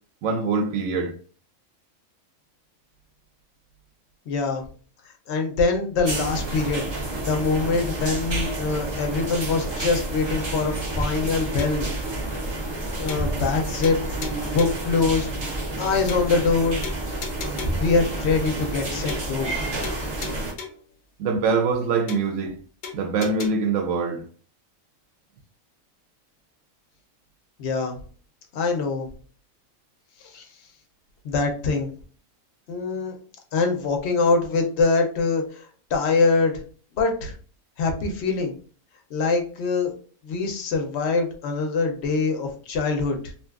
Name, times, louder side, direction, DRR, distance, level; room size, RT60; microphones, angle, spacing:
voice 1, 0.2-1.1 17.6-17.7 21.2-22.5 22.9-24.2, right 4 dB, 75° right, 1.0 m, -24 dB
voice 2, 4.3-4.6 5.3-6.8 7.2-11.9 12.8-14.0 14.5-15.3 15.8-16.8 17.8-19.5 27.6-28.0 28.5-29.1 30.2-30.4 31.2-31.9 32.7-33.2 33.5-36.6 36.9-37.3 37.8-38.5 39.1-39.9 40.2-43.3, left 4 dB, 65° left, 0.8 m, -24 dB
sound 1, 6.0-20.5, right 2 dB, 40° right, 0.4 m, -29 dB
sound 2, 11.6-11.9 12.3-12.4 12.7-12.8 13.1-13.6 13.8-14.9 15.3-15.4 15.7-15.8 16.1-16.6 16.8-17.9 18.3-18.4 18.7-18.8 19.1-19.6 19.8-20.9 21.3-21.4 21.7-21.8 22.1-22.6 22.8-23.5, left 6 dB, 90° left, 0.4 m, -37 dB
2.7 x 2.3 x 2.3 m
omnidirectional pair, 1.4 m